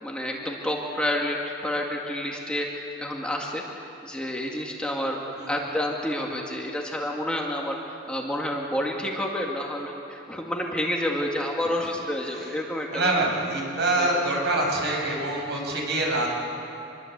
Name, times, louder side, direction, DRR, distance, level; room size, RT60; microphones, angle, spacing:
voice 1, 0.0-1.4 1.6-7.8 8.1-13.1 14.0-14.1, left 1 dB, 5° left, -1 dB, 2.0 m, -29 dB
voice 2, 12.9-16.3, right 2 dB, 60° right, -1 dB, 6.7 m, -25 dB
26.5 x 22.0 x 8.1 m, 2.9 s
head